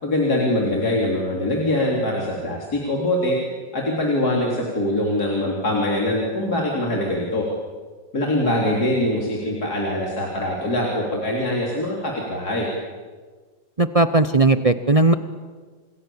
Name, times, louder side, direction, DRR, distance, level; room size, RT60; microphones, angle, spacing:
voice 1, 0.0-3.4 3.7-7.4 8.1-12.7, left 1 dB, 55° left, -2 dB, 4.3 m, -23 dB
voice 2, 13.8-15.1, right 2 dB, 35° right, 11 dB, 0.5 m, -17 dB
29.5 x 27.0 x 7.2 m, 1.4 s
omnidirectional pair, 2.0 m